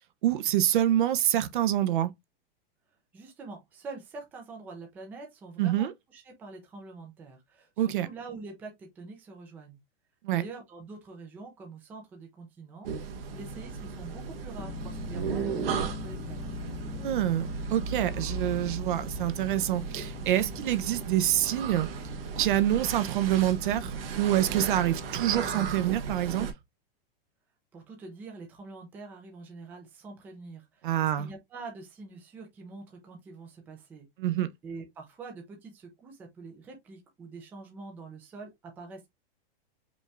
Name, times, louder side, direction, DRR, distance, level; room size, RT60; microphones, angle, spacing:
voice 1, 0.2-2.1 5.6-5.9 7.8-8.1 10.2-10.4 16.9-21.9 22.4-26.5 30.8-31.3 34.2-34.5, right 12 dB, 55° right, 0.7 m, -26 dB
voice 2, 3.1-9.8 10.3-16.4 27.7-34.1 34.6-39.1, right 3 dB, 5° right, 0.4 m, -45 dB
sound 1, 12.8-26.5, right 5 dB, 70° right, 1.2 m, -36 dB
sound 2, 14.6-26.0, left 5 dB, 15° left, 0.8 m, -44 dB
5.2 x 2.4 x 3.2 m
supercardioid pair, 175°, 30 cm